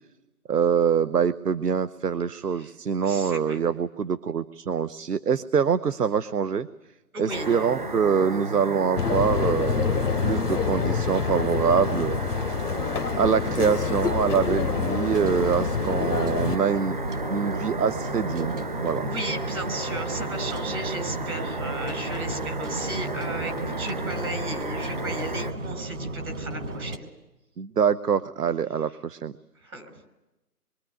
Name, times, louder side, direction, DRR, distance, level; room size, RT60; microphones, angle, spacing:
voice 1, 0.5-6.7 7.2-12.2 13.1-17.0 17.3-18.6 18.8-19.0 27.6-29.3, right 7 dB, 85° right, 14 dB, 1.0 m, -25 dB
voice 2, 3.0-3.7 7.1-7.6 19.0-27.1 29.6-29.9, right 2 dB, 65° right, 7 dB, 6.3 m, -35 dB
sound 1, 7.3-25.5, right 2 dB, 30° right, 0.9 m, -33 dB
sound 2, 9.0-16.6, left 7 dB, 75° left, 0.9 m, -27 dB
sound 3, 15.2-27.0, right 2 dB, 50° right, 2.1 m, -34 dB
26.0 x 23.5 x 9.5 m, 1.0 s
hypercardioid pair, 175°, 46 cm